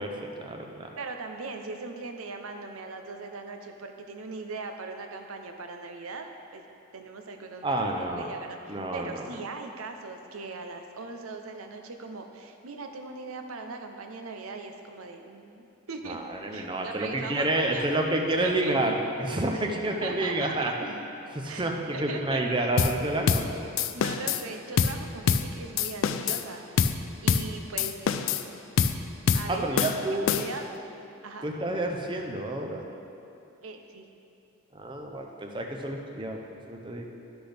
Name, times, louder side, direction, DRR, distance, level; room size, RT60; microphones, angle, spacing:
voice 1, 0.0-0.9 7.6-8.3 8.7-9.2 16.1-20.9 21.3-23.5 29.5-30.3 31.4-32.9 34.7-37.1, right 1 dB, 20° right, 2 dB, 0.6 m, -29 dB
voice 2, 1.0-6.6 6.9-7.9 8.2-16.2 16.5-17.8 18.4-18.7 19.5-19.6 20.0-20.7 21.4-22.4 23.9-27.0 27.2-28.1 29.3-30.7 31.2-31.5 33.6-34.1, right 3 dB, 85° right, 5 dB, 0.7 m, -39 dB
sound 1, 22.8-23.0 23.3-23.5 23.8-24.4 24.8-25.0 25.3-25.5 25.8-26.4 26.8-27.0 27.3-27.5 27.8-28.5 28.8-29.0 29.3-29.5 29.8-30.7, left 6 dB, 70° left, 0.3 m, -25 dB
11.5 x 6.1 x 3.4 m, 2.7 s
head